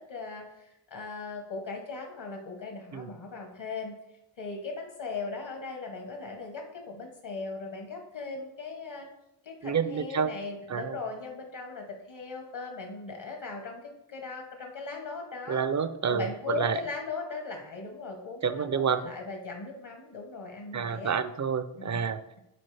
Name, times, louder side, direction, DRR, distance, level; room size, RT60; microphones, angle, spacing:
voice 1, 0.0-3.9 4.4-9.1 9.4-15.6 16.1-21.1 21.8-22.0, left 4 dB, 65° left, 2 dB, 1.2 m, -38 dB
voice 2, 9.6-10.3 10.7-11.0 15.5-16.8 18.4-19.1 20.7-22.2, right 6 dB, 40° right, 12 dB, 0.5 m, -29 dB
8.5 x 4.1 x 3.3 m, 0.86 s
wide cardioid pair, 65°, 48 cm